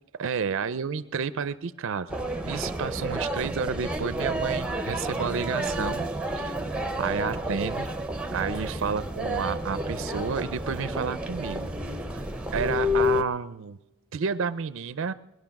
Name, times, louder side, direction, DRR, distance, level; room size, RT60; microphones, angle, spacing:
voice 1, 0.2-6.1 6.4-6.6 7.0-7.9 8.3-11.6 12.1-12.2 12.5-13.8 14.1-15.1, right 6 dB, 60° right, 15 dB, 0.4 m, -30 dB
sound 1, 2.1-13.2, equal, 5° right, 0.7 m, -30 dB
21.0 x 11.0 x 5.9 m, 1.0 s
head